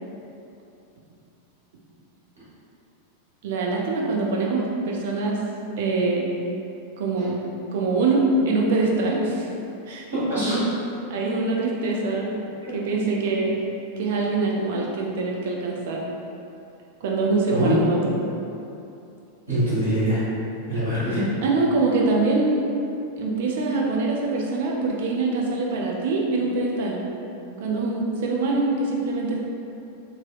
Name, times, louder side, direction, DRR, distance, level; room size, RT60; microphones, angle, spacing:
voice 1, 3.4-5.4 5.8-6.3 7.0-7.4 7.7-9.5 9.9-10.0 11.1-12.3 12.7-13.5 14.0-16.0 17.0-18.2 21.4-22.8 23.2-27.0 27.6-29.5, right 3 dB, 55° right, -2 dB, 0.4 m, -24 dB
voice 2, 10.1-10.7 12.6-12.7 17.5-17.7 19.5-20.2 20.7-21.3, right 1 dB, 70° right, -12 dB, 1.4 m, -23 dB
2.9 x 2.7 x 2.3 m, 2.7 s
figure-of-eight pair, 90°, 0 cm